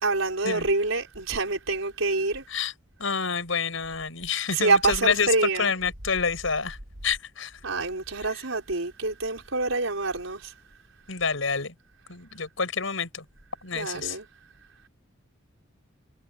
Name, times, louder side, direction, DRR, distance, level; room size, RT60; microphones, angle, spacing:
voice 1, 0.0-2.4 4.5-5.7 7.6-10.5 13.7-14.3, right 3 dB, 85° right, 5.1 m, -26 dB
voice 2, 3.0-6.8 7.0-7.6 11.1-11.7 12.1-13.2 13.6-14.2, left 5 dB, 85° left, 5.0 m, -28 dB
head